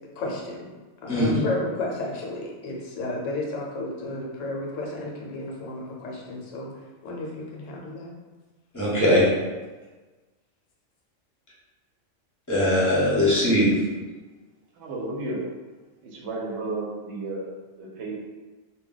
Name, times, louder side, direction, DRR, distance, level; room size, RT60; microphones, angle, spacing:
voice 1, 0.2-0.7 1.0-6.7 7.0-8.1, left 2 dB, 75° left, -1 dB, 1.0 m, -32 dB
voice 2, 1.1-1.4 8.7-9.2 12.5-13.7, equal, 15° left, -8 dB, 0.8 m, -20 dB
voice 3, 14.8-15.5 16.0-18.2, right 2 dB, 65° right, -2 dB, 0.8 m, -33 dB
2.2 x 2.2 x 3.8 m, 1.3 s
omnidirectional pair, 1.3 m